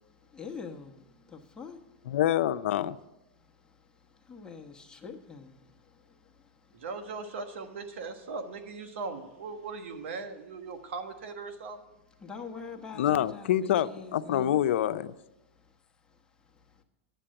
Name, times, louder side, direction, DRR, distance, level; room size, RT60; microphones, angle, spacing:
voice 1, 0.1-2.2 3.4-6.9 12.2-14.6 15.5-15.8 16.0-16.8, left 5 dB, 10° left, 1.1 m, -46 dB
voice 2, 2.1-3.0 13.0-15.1, left 11 dB, 80° left, 0.4 m, -26 dB
voice 3, 6.7-11.8, right 4 dB, 80° right, 1.3 m, -39 dB
10.0 x 7.6 x 7.6 m
supercardioid pair, 130°, 6 cm